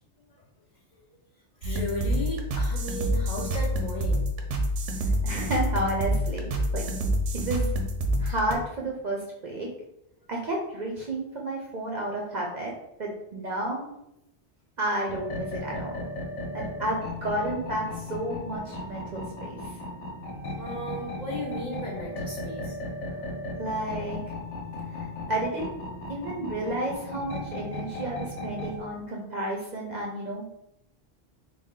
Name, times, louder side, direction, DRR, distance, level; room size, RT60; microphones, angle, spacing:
voice 1, 1.6-4.3 20.6-22.8, left 1 dB, 45° left, -4 dB, 0.6 m, -35 dB
sound 1, 1.6-8.5, equal, 85° right, 0.9 m, -27 dB
voice 2, 5.0-6.9 7.4-7.7 8.2-9.7 10.3-12.7 13.0-13.9 14.8-16.0 16.5-19.8 23.6-24.2 24.9-25.8 26.1-30.5, right 1 dB, 55° right, -2 dB, 0.5 m, -31 dB
sound 2, 15.1-28.8, left 1 dB, 85° left, 1.1 m, -36 dB
3.3 x 2.2 x 3.6 m, 0.83 s
omnidirectional pair, 1.2 m